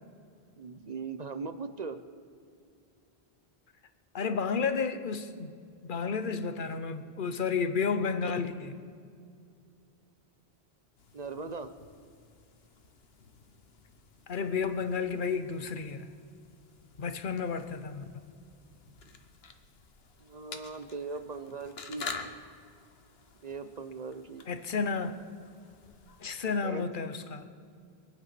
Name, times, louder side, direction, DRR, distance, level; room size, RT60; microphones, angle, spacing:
voice 1, 0.6-2.0 11.1-11.7 20.2-22.1 23.4-24.5 26.6-26.8, right 4 dB, 45° right, 0.8 m, -39 dB
voice 2, 4.1-5.5 5.8-8.8 14.3-16.1 17.0-18.1 24.5-25.1 26.2-27.5, left 5 dB, 55° left, 1.1 m, -31 dB
sound 1, 11.0-26.6, left 4 dB, 70° left, 1.3 m, -49 dB
23.5 x 8.9 x 6.0 m
omnidirectional pair, 1.1 m